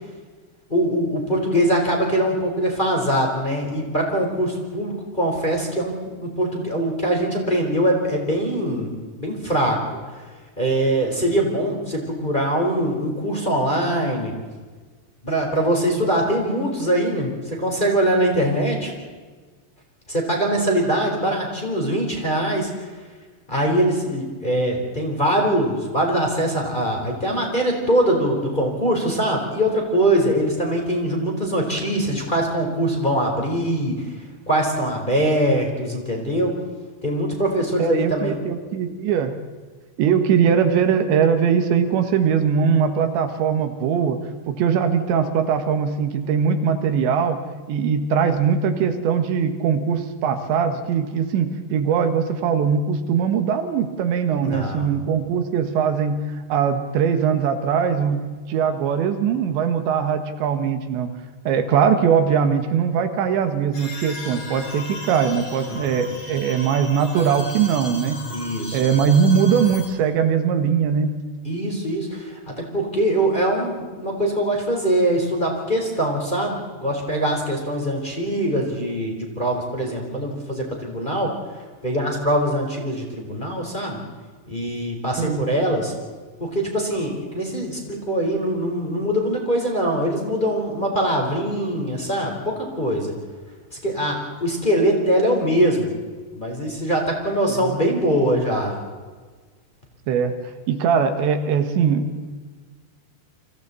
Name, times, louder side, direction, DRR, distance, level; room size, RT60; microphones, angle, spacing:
voice 1, 0.7-8.9 9.2-9.8 10.6-14.3 15.2-18.9 20.1-22.7 23.5-34.0 34.5-36.5 37.0-38.4 54.4-54.9 65.8-66.0 68.3-68.8 71.4-81.3 81.8-84.0 84.5-85.9 86.4-93.1 93.8-95.9 96.4-98.7, right 1 dB, 10° left, 0 dB, 3.7 m, -22 dB
voice 2, 37.8-39.4 40.0-44.2 44.5-47.4 47.7-61.1 61.5-68.2 68.7-71.1 85.2-85.5 97.5-97.8 100.1-100.4 100.7-102.1, right 7 dB, 85° right, 7 dB, 3.8 m, -21 dB
sound 1, 63.7-69.9, left 2 dB, 40° left, 7.0 m, -36 dB
29.5 x 25.5 x 4.2 m, 1.4 s
omnidirectional pair, 5.1 m